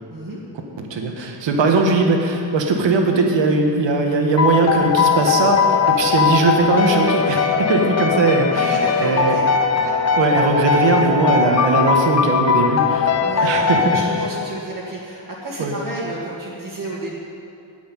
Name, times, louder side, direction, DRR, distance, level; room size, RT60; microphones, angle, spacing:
voice 1, 0.8-9.4 10.2-13.1 13.4-14.0 15.6-15.8, right 3 dB, 70° right, 3 dB, 1.7 m, -19 dB
sound 1, 4.4-14.8, left 6 dB, 35° left, 0.7 m, -19 dB
voice 2, 8.5-9.4 9.8-9.9 13.2-17.2, right 1 dB, 45° right, -6 dB, 2.2 m, -31 dB
9.7 x 8.5 x 9.2 m, 2.6 s
wide cardioid pair, 155°, 45 cm